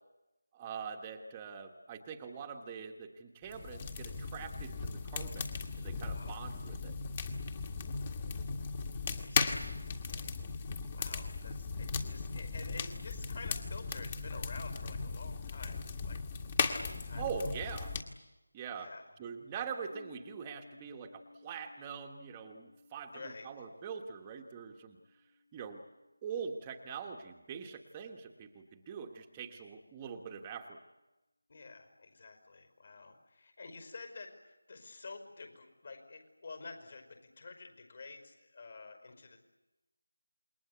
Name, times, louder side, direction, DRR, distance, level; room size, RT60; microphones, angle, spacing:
voice 1, 0.5-5.5 5.8-6.9 17.2-17.9 18.5-18.9 19.2-23.1 23.4-25.0 25.5-25.8 26.2-30.8, right 6 dB, 15° right, 3 dB, 1.3 m, -43 dB
sound 1, 3.5-18.0, left 5 dB, 25° left, 1.9 m, -37 dB
voice 2, 6.1-6.4 8.0-8.6 9.1-16.3 16.8-17.5 18.7-19.1 23.1-23.7 31.5-39.4, left 4 dB, 45° left, 6 dB, 5.3 m, -50 dB
sound 2, 19.9-27.7, left 2 dB, 85° left, 4.1 m, -60 dB
28.0 x 22.0 x 8.4 m, 1.0 s
figure-of-eight pair, 165°, 0 cm